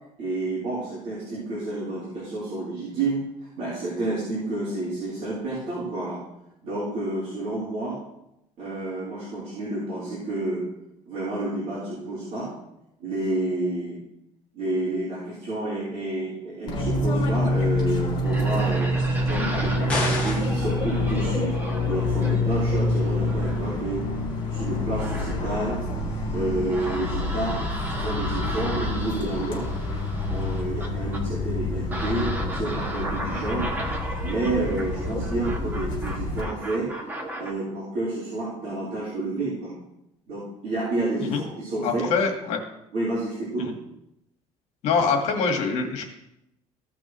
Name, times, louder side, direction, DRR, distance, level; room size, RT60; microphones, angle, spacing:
voice 1, 0.2-3.2 3.6-6.2 6.6-8.0 8.6-10.6 11.1-12.5 13.0-14.0 14.5-19.0 19.2-21.5 21.8-24.0 24.5-25.8 26.3-27.7 28.0-29.7 30.3-33.7 34.2-36.9 37.4-39.7 40.3-42.1 42.9-43.7, right 2 dB, 60° right, -9 dB, 3.9 m, -29 dB
Fixed-wing aircraft airplane, 16.7-36.4, left 2 dB, 35° left, 3.2 m, -27 dB
sound 1, 18.2-37.5, right 1 dB, 15° right, 1.2 m, -36 dB
sound 2, 19.9-20.6, left 2 dB, 10° left, 2.2 m, -27 dB
voice 2, 41.8-42.6 43.6-43.7 44.8-46.0, left 5 dB, 65° left, 4 dB, 1.7 m, -24 dB
15.5 x 6.1 x 3.1 m, 0.84 s
cardioid pair, 160°, 13 cm